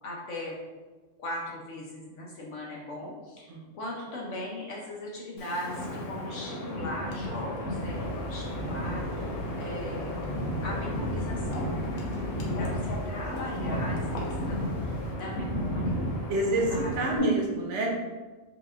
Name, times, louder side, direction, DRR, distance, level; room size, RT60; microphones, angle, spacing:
voice 1, 0.0-0.5 1.2-9.3 9.6-10.2 10.6-11.7 12.5-16.1 16.7-16.9, left 1 dB, 65° left, -3 dB, 1.0 m, -39 dB
Wind, 5.4-17.2, equal, 85° left, 1.2 m, -33 dB
sound 1, 7.7-15.1, left 1 dB, 40° left, 0.9 m, -42 dB
voice 2, 12.1-12.6 16.3-17.9, right 1 dB, 60° right, -1 dB, 1.0 m, -28 dB
4.8 x 2.9 x 2.4 m, 1.3 s
omnidirectional pair, 1.4 m